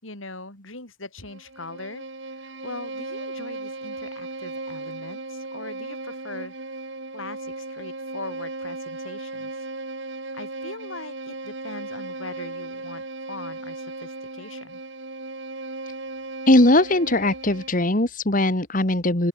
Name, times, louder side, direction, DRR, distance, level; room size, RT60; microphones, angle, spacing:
voice 1, 0.0-2.0 2.4-6.6 7.1-9.5 10.3-14.8, left 2 dB, 75° left, 7.9 m, -40 dB
Bowed string instrument, 1.2-17.8, right 2 dB, 60° right, 3.1 m, -36 dB
voice 2, 16.5-19.3, left 1 dB, 40° left, 2.1 m, -20 dB
open air
head